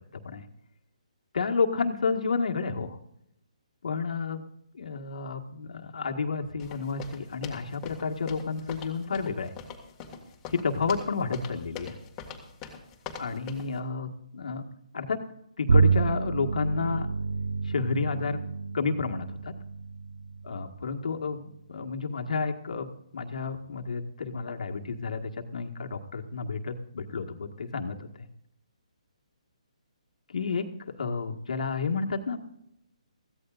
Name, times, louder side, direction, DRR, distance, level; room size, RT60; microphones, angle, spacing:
voice 1, 0.1-0.5 1.3-3.0 3.8-4.4 4.7-9.5 10.5-12.0 13.2-14.6 14.9-15.2 15.6-17.1 17.6-18.4 18.7-19.5 20.4-22.9 23.1-28.3 30.3-32.4, left 4 dB, 70° left, 3 dB, 1.7 m, -31 dB
sound 1, 6.6-13.8, left 6 dB, 15° left, 2.0 m, -42 dB
Bowed string instrument, 15.7-21.3, right 4 dB, 85° right, 0.5 m, -28 dB
21.0 x 16.0 x 2.5 m, 0.77 s
hypercardioid pair, 160°, 4 cm